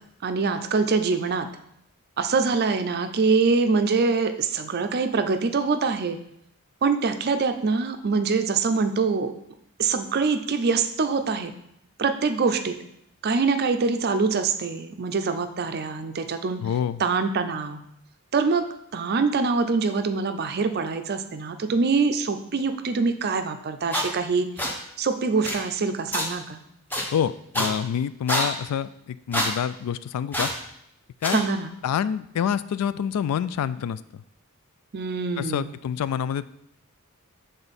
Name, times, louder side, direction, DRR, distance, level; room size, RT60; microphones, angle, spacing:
voice 1, 0.2-1.5 2.2-6.2 6.8-9.3 9.8-11.5 12.0-12.8 13.2-16.6 17.0-17.8 18.3-18.7 18.9-24.5 25.0-26.6 31.3-31.7 34.9-35.7, right 4 dB, 45° right, 8 dB, 0.5 m, -24 dB
voice 2, 16.6-17.0 27.1-30.5 31.2-31.4 31.8-34.0 35.4-36.4, left 8 dB, 85° left, 17 dB, 0.3 m, -27 dB
sound 1, 23.9-24.1 24.6-24.7 25.4-25.6 26.1-26.3 26.9-27.0 27.5-27.7 28.3-28.5 29.3-29.5 30.3-30.6 31.2-31.4, equal, 10° left, 0.8 m, -25 dB
6.9 x 3.8 x 4.1 m, 0.76 s
head